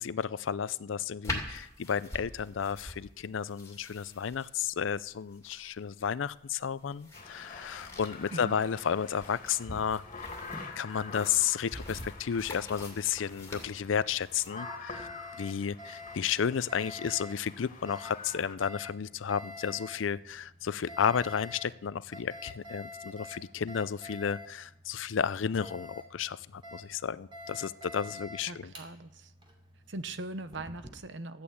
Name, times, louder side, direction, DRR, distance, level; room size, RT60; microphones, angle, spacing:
voice 1, 0.0-10.0 10.8-15.1 15.4-28.7, left 7 dB, 75° left, 18 dB, 0.5 m, -32 dB
sound 1, 1.2-14.5, left 2 dB, 15° left, 2.5 m, -45 dB
sound 2, 7.1-18.6, left 3 dB, 45° left, 1.9 m, -46 dB
Alarm, 11.5-30.9, left 2 dB, 30° right, 2.8 m, -48 dB
voice 2, 28.5-29.3 29.9-31.4, right 2 dB, 70° right, 12 dB, 0.9 m, -40 dB
13.0 x 8.7 x 8.4 m, 0.84 s
head